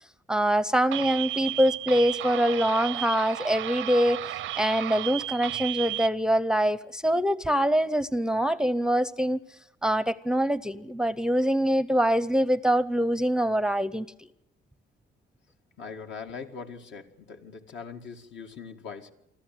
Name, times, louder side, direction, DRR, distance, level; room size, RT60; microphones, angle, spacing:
voice 1, 0.3-9.4 9.8-14.1, equal, 5° right, 0.7 m, -24 dB
sound 1, 0.9-6.1, right 14 dB, 85° right, 0.7 m, -33 dB
voice 2, 15.8-19.1, left 5 dB, 65° left, 2.1 m, -41 dB
25.5 x 13.5 x 9.2 m
cardioid pair, 90°, 20 cm